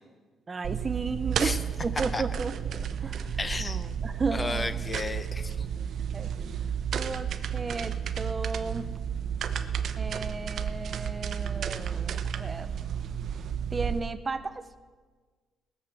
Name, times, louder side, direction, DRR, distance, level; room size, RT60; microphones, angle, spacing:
voice 1, 0.5-1.5 1.8-3.4 4.0-4.9 6.1-6.3 6.9-8.9 10.0-12.7 13.7-14.6, right 4 dB, 25° right, 11 dB, 0.5 m, -34 dB
sound 1, 0.6-14.0, right 8 dB, 55° right, 0.8 m, -32 dB
voice 2, 3.4-4.0 4.3-5.7, left 3 dB, 20° left, 12 dB, 0.7 m, -33 dB
19.5 x 6.6 x 7.6 m, 1.5 s
cardioid pair, 140°, 0 cm